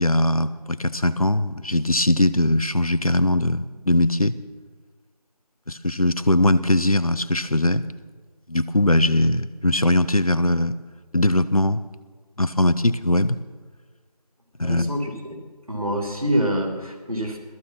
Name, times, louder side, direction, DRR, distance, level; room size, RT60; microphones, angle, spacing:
voice 1, 0.0-4.3 5.7-7.8 8.5-10.7 11.1-11.8 12.4-13.4 14.6-14.9, left 1 dB, 60° left, 14 dB, 0.9 m, -20 dB
voice 2, 14.6-15.4 15.7-17.4, equal, 60° right, 2 dB, 3.1 m, -26 dB
17.5 x 14.5 x 5.8 m, 1.4 s
figure-of-eight pair, 180°, 21 cm